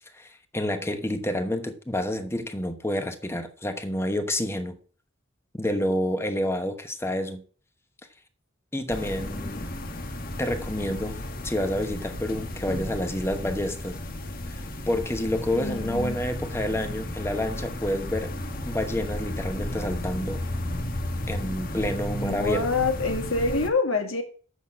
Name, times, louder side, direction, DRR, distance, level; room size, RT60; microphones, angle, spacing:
voice 1, 0.2-4.7 5.5-7.4 8.7-9.7 10.4-11.2 11.4-14.0 14.5-18.3 18.7-20.4 21.3-22.6, left 1 dB, 10° left, 1.1 m, -29 dB
sound 1, 8.9-23.7, left 1 dB, 45° left, 1.4 m, -33 dB
voice 2, 15.5-16.2 22.2-24.2, left 3 dB, 90° left, 2.0 m, -26 dB
8.1 x 6.2 x 7.4 m
head